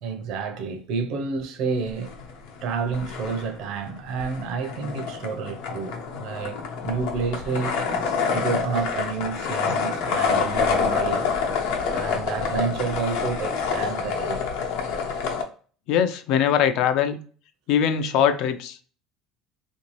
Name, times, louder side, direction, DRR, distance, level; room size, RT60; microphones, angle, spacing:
voice 1, 0.0-2.2 2.6-6.6 6.8-7.9 8.3-11.3 11.9-14.5, right 5 dB, 50° right, 0.5 m, -29 dB
sound 1, 1.9-2.6 2.9-15.4, left 5 dB, 75° left, 0.8 m, -27 dB
voice 2, 15.9-17.2 17.7-18.8, left 8 dB, 55° left, 0.4 m, -22 dB
3.3 x 2.7 x 3.0 m
cardioid pair, 170°, 0 cm